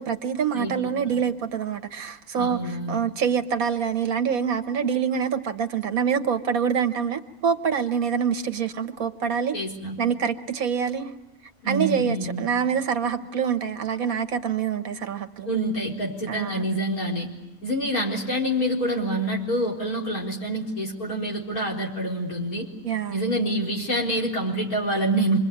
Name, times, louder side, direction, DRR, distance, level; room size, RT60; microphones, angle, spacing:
voice 1, 0.0-9.6 10.0-11.1 11.7-15.5 16.3-16.6 22.8-23.2, right 7 dB, 65° right, 9 dB, 1.5 m, -26 dB
voice 2, 2.3-3.1 9.5-10.0 11.6-12.5 15.5-17.3 17.6-22.7 23.1-25.4, right 1 dB, 65° left, -2 dB, 4.8 m, -27 dB
27.0 x 22.5 x 8.7 m, 1.0 s
omnidirectional pair, 1.7 m